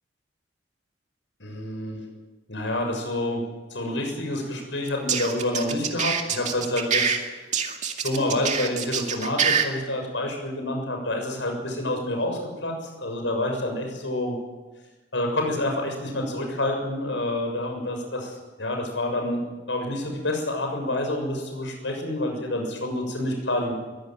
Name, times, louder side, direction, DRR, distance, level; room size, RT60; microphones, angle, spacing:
voice 1, 1.4-2.1 2.5-3.4 3.7-7.1 8.0-14.4 15.1-23.7, left 1 dB, 80° left, 3 dB, 6.8 m, -28 dB
sound 1, 4.9-7.2 7.5-9.6, right 7 dB, 40° right, 2.2 m, -25 dB
22.5 x 16.0 x 9.0 m, 1.2 s
head